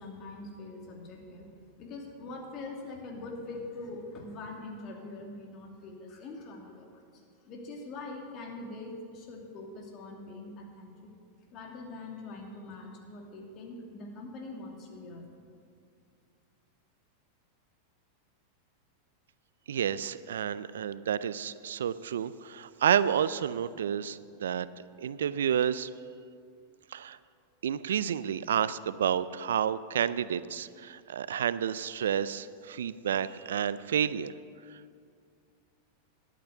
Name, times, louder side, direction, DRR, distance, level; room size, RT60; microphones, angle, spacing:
voice 1, 0.0-11.1 11.5-15.3, left 2 dB, 40° left, 1 dB, 2.7 m, -43 dB
voice 2, 19.7-24.7 25.0-25.9 26.9-27.2 27.6-34.4 34.7-34.8, right 9 dB, 75° right, 16 dB, 0.4 m, -30 dB
12.0 x 8.5 x 8.0 m, 2.3 s
hypercardioid pair, 100°, 0 cm